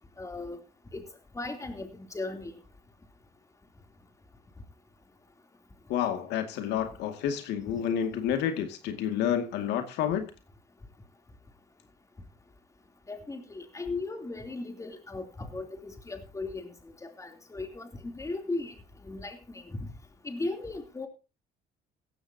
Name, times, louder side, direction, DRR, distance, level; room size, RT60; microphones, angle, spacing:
voice 1, 0.2-0.6 0.9-1.0 1.3-2.5 13.1-16.7 17.0-18.7 19.0-19.9 20.2-21.1, left 2 dB, 20° left, 6 dB, 3.2 m, -37 dB
voice 2, 5.9-10.3, left 9 dB, 85° left, 7 dB, 2.3 m, -29 dB
16.0 x 15.0 x 2.9 m, 0.31 s
cardioid pair, 110°, 17 cm